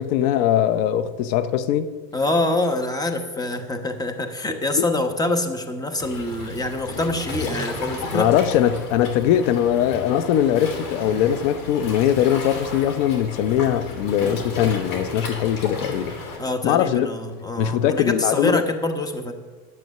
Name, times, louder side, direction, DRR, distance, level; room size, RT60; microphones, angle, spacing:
voice 1, 0.0-1.9 4.7-4.8 8.1-16.1 16.6-17.1 17.6-18.6, left 10 dB, 85° left, 0.8 m, -21 dB
voice 2, 2.1-8.3 16.4-19.3, left 2 dB, 10° left, 1.1 m, -25 dB
Waves surf, 6.0-16.4, left 3 dB, 60° left, 3.2 m, -33 dB
11.0 x 8.4 x 6.5 m
supercardioid pair, 125°, 37 cm